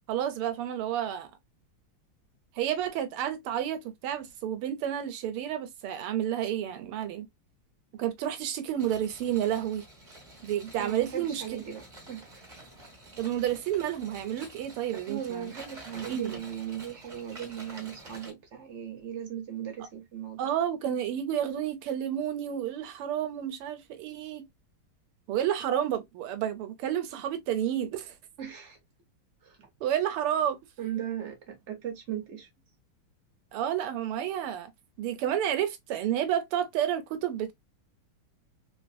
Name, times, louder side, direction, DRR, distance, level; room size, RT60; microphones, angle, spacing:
voice 1, 0.1-1.3 2.6-7.3 8.0-9.8 10.4-11.4 13.2-15.5 16.1-16.5 20.4-24.4 25.3-28.1 29.8-30.6 33.5-34.7 35.0-37.5, right 10 dB, 85° right, 1.6 m, -30 dB
sound 1, 8.8-18.3, right 2 dB, 35° right, 0.7 m, -49 dB
voice 2, 10.8-11.8 12.1-12.5 14.9-20.4 28.4-28.8 29.4-29.7 30.8-32.5, right 9 dB, 70° right, 0.6 m, -38 dB
3.7 x 2.6 x 2.2 m
omnidirectional pair, 2.4 m